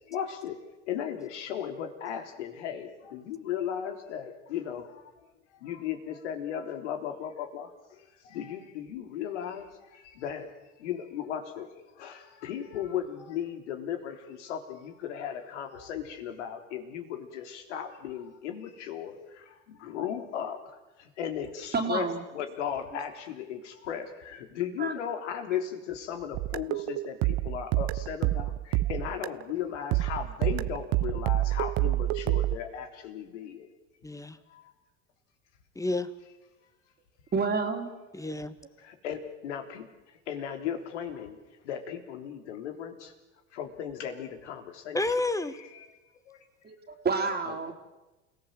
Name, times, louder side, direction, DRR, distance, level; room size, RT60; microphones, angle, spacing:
voice 1, 0.1-0.5 0.9-4.9 5.6-7.7 8.3-9.7 10.1-10.5 10.8-11.7 12.0-19.2 19.7-20.6 21.2-22.1 22.3-33.7 38.9-39.9 40.3-41.3 41.6-43.1 43.5-45.7 46.3-46.4 47.5-47.7, left 9 dB, 70° left, 6 dB, 3.4 m, -36 dB
voice 2, 21.7-22.2 24.8-24.9 37.3-37.9 46.6-47.7, right 4 dB, 25° right, 3 dB, 3.2 m, -29 dB
sound 1, 26.3-29.5 29.9-32.6, right 17 dB, 50° right, 0.8 m, -28 dB
voice 3, 34.0-34.4 35.7-36.1 38.1-38.5 44.9-45.6, left 2 dB, 10° left, 13 dB, 1.5 m, -30 dB
29.5 x 17.5 x 7.6 m, 1.1 s
hypercardioid pair, 80°, 36 cm